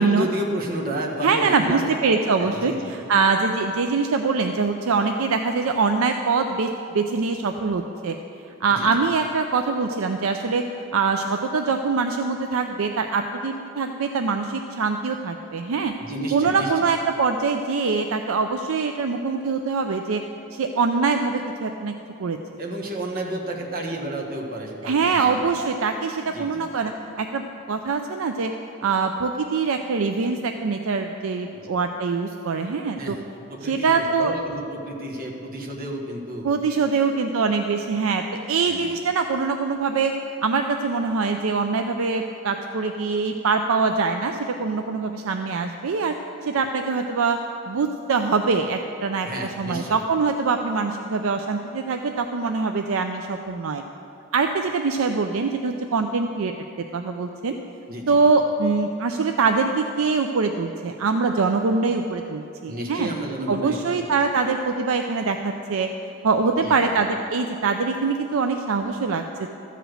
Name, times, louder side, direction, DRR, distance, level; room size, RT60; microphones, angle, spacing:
voice 1, 0.0-2.0 2.4-2.9 8.7-9.0 16.0-16.9 22.6-25.6 26.3-26.7 31.5-31.7 33.0-33.2 33.5-36.5 37.0-37.1 38.6-38.9 49.3-50.0 57.9-58.2 62.7-64.0 66.6-67.0, right 1 dB, 45° right, -1 dB, 1.4 m, -31 dB
voice 2, 1.2-2.7 3.1-8.2 8.6-10.6 10.9-15.9 16.3-20.2 20.5-21.9 22.2-22.4 24.8-28.5 28.8-33.2 33.6-34.3 36.4-40.1 40.4-46.1 46.4-47.4 47.7-49.3 49.6-53.8 54.3-56.5 56.9-57.5 58.1-63.1 63.5-65.9 66.2-69.5, right 4 dB, 70° right, 5 dB, 0.5 m, -23 dB
13.5 x 5.0 x 7.8 m, 2.8 s
head